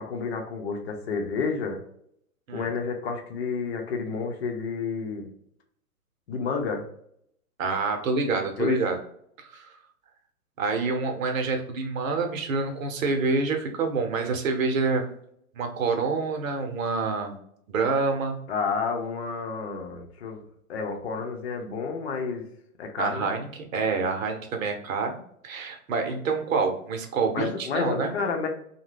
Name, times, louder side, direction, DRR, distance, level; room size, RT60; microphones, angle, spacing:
voice 1, 0.0-1.8 2.5-5.3 6.3-6.8 8.6-8.8 18.5-20.4 20.7-22.4 22.8-23.3 27.3-28.5, left 5 dB, 45° left, 3 dB, 0.7 m, -30 dB
voice 2, 7.6-9.0 9.4-9.7 10.6-15.1 15.5-17.3 17.7-18.4 23.0-28.1, right 4 dB, 60° right, 4 dB, 0.9 m, -27 dB
2.7 x 2.2 x 3.3 m, 0.70 s
hypercardioid pair, 140°, 44 cm